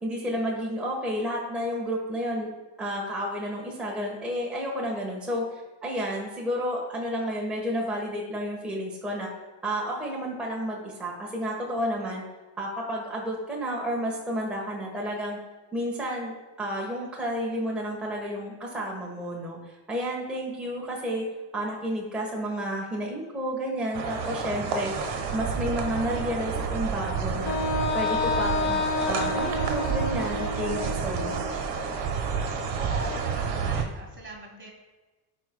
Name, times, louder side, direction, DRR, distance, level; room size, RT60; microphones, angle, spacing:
voice 1, 0.0-2.5 2.8-9.3 9.6-12.2 12.6-15.4 15.7-16.3 16.6-19.6 19.9-21.2 21.5-24.9 25.3-27.5 27.9-28.8 29.1-31.7, equal, ahead, -4 dB, 1.2 m, -31 dB
sound 1, 23.9-33.8, right 6 dB, 50° right, 1.4 m, -30 dB
Wind instrument woodwind instrument, 27.5-31.5, left 4 dB, 35° left, 0.7 m, -29 dB
voice 2, 32.7-34.7, right 2 dB, 20° right, 0 dB, 1.4 m, -41 dB
12.5 x 4.6 x 2.3 m, 1.2 s
cardioid pair, 115°, 50 cm